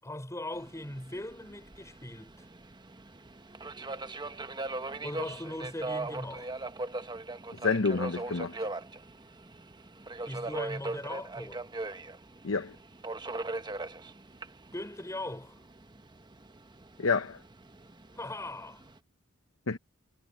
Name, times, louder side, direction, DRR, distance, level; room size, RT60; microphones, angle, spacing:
voice 1, 0.0-2.4 5.0-6.5 10.3-11.6 14.7-15.6 18.1-18.8, left 1 dB, 15° left, 5.9 m, -39 dB
Subway metro underground, 0.5-19.0, right 2 dB, 20° right, 0.9 m, -40 dB
voice 2, 7.6-8.6 12.4-12.7 17.0-17.4 19.7-19.8, left 4 dB, 70° left, 0.9 m, -28 dB
head